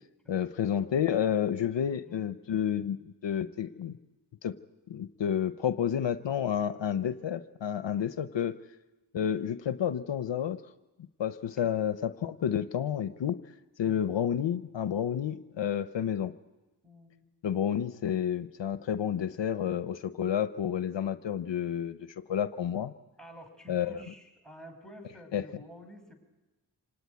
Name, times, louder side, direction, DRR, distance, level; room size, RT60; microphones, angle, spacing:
voice 1, 0.3-4.0 4.4-4.5 4.9-8.5 9.1-10.6 11.2-13.4 13.8-16.3 17.4-22.9 23.7-24.0 25.3-25.4, left 9 dB, 75° left, 12 dB, 0.8 m, -30 dB
voice 2, 16.8-17.2 23.2-26.1, equal, ahead, 4 dB, 5.7 m, -50 dB
26.5 x 18.0 x 9.4 m, 1.1 s
cardioid pair, 45°, 44 cm